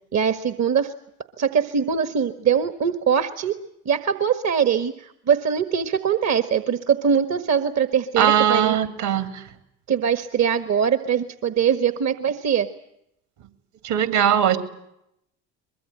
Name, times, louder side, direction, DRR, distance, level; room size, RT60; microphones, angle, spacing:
voice 1, 0.1-0.9 1.4-3.5 3.8-8.8 9.9-12.7, right 7 dB, 35° right, 11 dB, 1.6 m, -22 dB
voice 2, 8.2-9.4 13.8-14.6, right 9 dB, 55° right, 9 dB, 3.3 m, -20 dB
23.5 x 22.0 x 8.8 m, 0.78 s
figure-of-eight pair, 65°, 49 cm